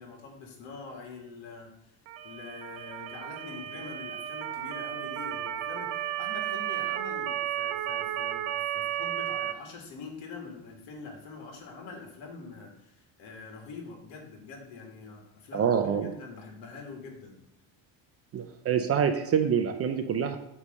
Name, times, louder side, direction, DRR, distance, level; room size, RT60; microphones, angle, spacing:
voice 1, 0.0-1.7 2.2-17.4, left 4 dB, 70° left, 1 dB, 2.2 m, -44 dB
Motor vehicle (road) / Siren, 2.1-9.5, right 11 dB, 75° right, 0.8 m, -33 dB
voice 2, 15.5-16.1 18.3-20.4, right 7 dB, 30° right, 7 dB, 0.5 m, -26 dB
8.3 x 3.4 x 6.6 m, 0.80 s
cardioid pair, 145°, 46 cm